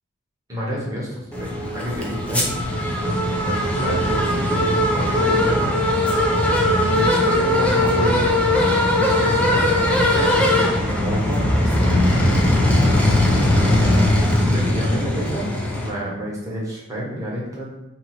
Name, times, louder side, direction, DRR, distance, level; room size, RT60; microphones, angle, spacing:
voice 1, 0.5-2.5 3.0-5.7 6.8-8.2 9.2-12.2 14.4-17.7, equal, 15° right, -6 dB, 1.0 m, -29 dB
sound 1, 1.3-15.9, left 1 dB, 5° left, 0.4 m, -19 dB
2.8 x 2.6 x 4.1 m, 0.91 s
head